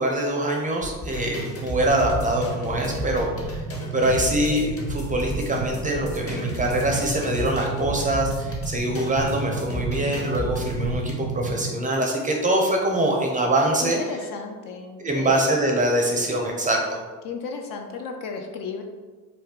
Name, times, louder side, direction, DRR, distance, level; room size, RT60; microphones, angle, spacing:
voice 1, 0.0-3.6 3.9-14.0 15.0-17.0, right 1 dB, 20° right, 0 dB, 0.5 m, -24 dB
sound 1, 0.8-11.1, left 1 dB, 35° left, 0.8 m, -34 dB
sound 2, 1.1-11.7, right 4 dB, 75° right, 0.5 m, -32 dB
voice 2, 13.8-15.4 16.1-16.2 17.2-18.8, left 5 dB, 50° left, 3 dB, 0.5 m, -34 dB
2.5 x 2.2 x 3.5 m, 1.3 s
hypercardioid pair, 60°, 43 cm